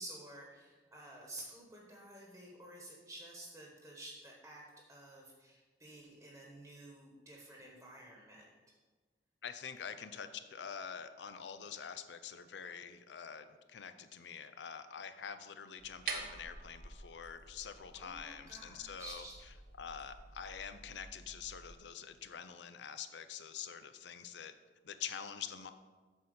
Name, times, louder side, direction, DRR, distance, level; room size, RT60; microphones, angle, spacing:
voice 1, 0.0-4.6 4.9-8.4 17.9-19.3, right 1 dB, 15° right, -1 dB, 1.2 m, -51 dB
voice 2, 9.4-19.2 19.8-24.5 24.8-25.7, left 7 dB, 80° left, 10 dB, 0.5 m, -46 dB
sound 1, 15.8-21.7, right 4 dB, 55° right, 1.0 m, -48 dB
8.0 x 4.2 x 6.5 m, 1.4 s
head